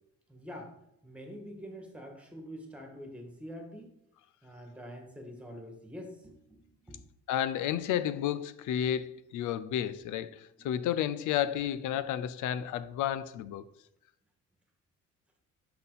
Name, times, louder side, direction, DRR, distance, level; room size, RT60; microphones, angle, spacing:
voice 1, 0.3-0.7 1.0-3.9 4.4-7.0 10.6-10.7, equal, 5° right, 1.8 m, -46 dB
voice 2, 7.3-13.6, left 10 dB, 80° left, 0.5 m, -31 dB
5.8 x 5.8 x 4.1 m
cardioid pair, 90°, 30 cm